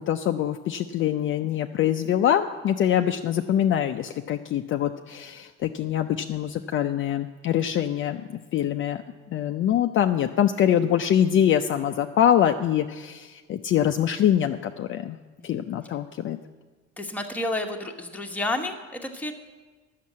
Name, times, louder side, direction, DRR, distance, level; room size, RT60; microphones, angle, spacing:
voice 1, 0.0-9.0 9.3-15.2 15.4-16.4, left 10 dB, 45° left, 6 dB, 0.5 m, -24 dB
voice 2, 17.0-19.3, left 2 dB, 5° left, 2 dB, 1.1 m, -30 dB
10.0 x 6.6 x 8.4 m, 1.3 s
cardioid pair, 115°, 29 cm